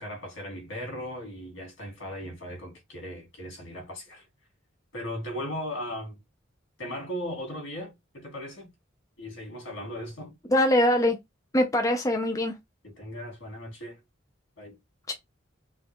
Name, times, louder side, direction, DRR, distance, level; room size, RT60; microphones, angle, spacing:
voice 1, 0.0-4.3 4.9-6.2 6.8-8.7 9.2-10.3 12.8-14.0 14.6-14.8, equal, 70° left, 2.9 m, -37 dB
voice 2, 10.5-11.2 11.5-12.5 15.1-15.2, left 1 dB, 15° left, 0.6 m, -22 dB
5.4 x 2.5 x 3.6 m
head